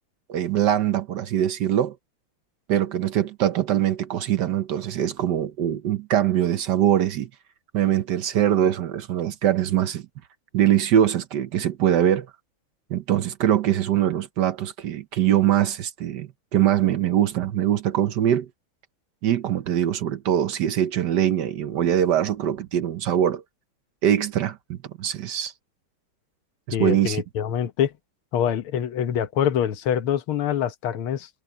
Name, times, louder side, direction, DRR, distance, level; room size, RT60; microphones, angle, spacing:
voice 1, 0.3-1.9 2.7-7.3 7.7-10.1 10.5-12.3 12.9-18.5 19.2-23.4 24.0-25.5 26.7-27.2, right 10 dB, 60° right, 1.3 m, -22 dB
voice 2, 26.7-27.9 28.3-31.3, left 9 dB, 85° left, 1.9 m, -25 dB
omnidirectional pair, 2.3 m